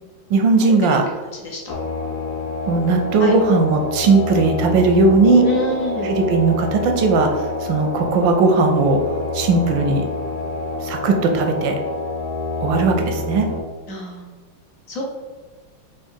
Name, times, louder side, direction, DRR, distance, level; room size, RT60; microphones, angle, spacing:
voice 1, 0.3-1.1 2.7-5.4 6.0-9.0 9.3-10.1 10.8-11.8 12.6-13.5, right 3 dB, 75° right, 4 dB, 1.2 m, -17 dB
voice 2, 1.4-1.7 3.2-3.3 5.4-6.1 13.9-14.3 14.9-15.0, left 1 dB, 55° left, -2 dB, 0.9 m, -26 dB
sound 1, 1.7-13.6, left 2 dB, 80° left, 1.4 m, -27 dB
3.7 x 3.2 x 4.4 m, 1.4 s
omnidirectional pair, 2.3 m